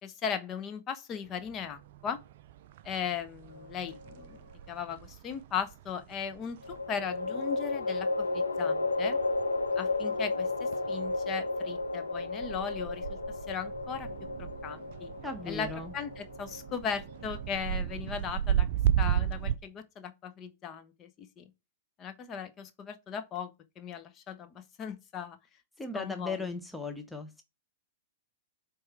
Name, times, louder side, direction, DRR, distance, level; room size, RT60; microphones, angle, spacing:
voice 1, 0.0-2.2 2.8-4.4 4.7-9.2 9.8-13.2 13.5-14.1 14.4-15.1 15.5-15.7 15.9-18.7 19.0-21.5 22.0-23.5 23.8-25.4 25.9-26.4, left 7 dB, 25° left, 1.0 m, -38 dB
sound 1, 1.2-19.6, right 10 dB, 50° right, 0.4 m, -36 dB
sound 2, 3.6-4.4 6.6-17.9, left 3 dB, 80° left, 0.8 m, -33 dB
voice 2, 15.2-15.9 25.8-27.4, left 3 dB, 5° left, 0.7 m, -37 dB
7.8 x 3.5 x 4.5 m
figure-of-eight pair, 105°, 0 cm